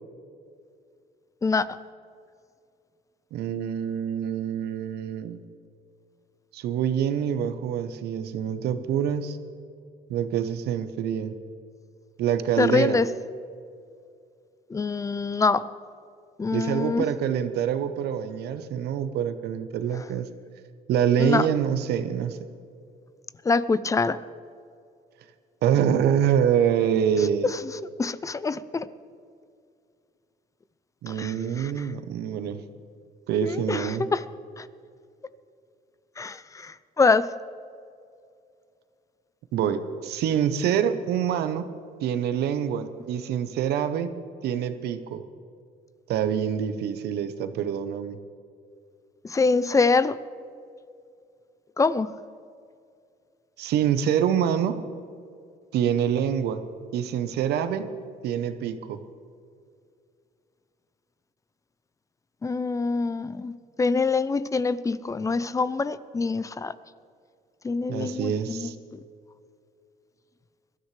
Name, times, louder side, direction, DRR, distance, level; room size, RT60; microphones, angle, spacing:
voice 1, 3.3-5.4 6.5-9.4 10.1-11.4 12.2-13.0 16.5-20.3 20.9-22.4 25.6-27.5 31.0-32.6 33.3-34.1 39.5-41.7 42.0-44.1 44.4-45.2 46.1-48.2 53.6-54.8 55.7-57.9 58.2-59.0 67.9-68.7, right 9 dB, 75° right, 10 dB, 0.9 m, -26 dB
voice 2, 12.6-13.1 14.7-15.6 16.4-17.1 21.2-21.5 23.5-24.2 27.5-27.6 28.0-28.9 31.1-31.7 33.4-34.2 34.6-34.7 36.2-37.3 49.3-50.2 51.8-52.1 62.4-66.7 67.6-68.7, left 4 dB, 20° left, 16 dB, 0.5 m, -25 dB
22.0 x 13.0 x 3.3 m, 2.4 s
cardioid pair, 110°, 17 cm